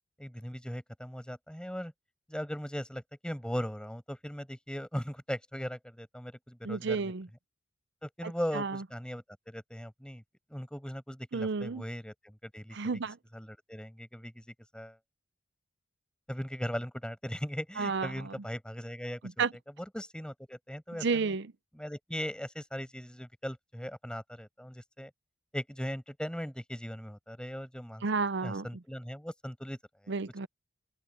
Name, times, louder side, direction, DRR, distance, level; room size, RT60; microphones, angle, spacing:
voice 1, 0.2-1.9 2.3-7.1 8.0-10.2 10.5-12.8 13.3-14.4 14.7-15.0 16.3-19.4 19.9-21.3 21.7-25.1 25.5-28.0 28.4-29.8 30.0-30.1, equal, 5° left, 5.7 m, -39 dB
voice 2, 6.6-7.3 8.2-8.8 11.3-11.8 12.7-13.2 17.8-18.3 19.4-19.5 21.0-21.5 28.0-28.7 30.1-30.5, right 4 dB, 60° right, 0.6 m, -31 dB
head